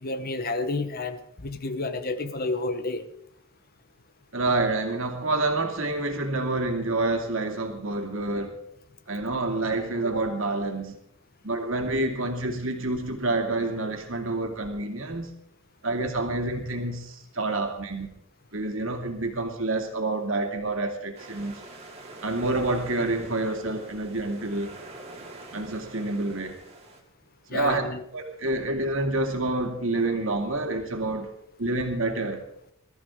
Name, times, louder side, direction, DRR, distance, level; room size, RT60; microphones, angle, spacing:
voice 1, 0.0-3.1 27.5-28.0, left 2 dB, 40° left, 1.0 m, -30 dB
voice 2, 4.3-8.6 9.1-11.0 11.4-15.3 15.8-18.2 18.5-21.6 22.2-24.8 25.5-26.6 27.5-27.8 28.1-31.3 31.6-32.4, right 2 dB, 60° right, 2.4 m, -28 dB
sound 1, 21.1-27.0, right 2 dB, 30° right, 2.6 m, -46 dB
21.0 x 13.5 x 3.7 m
head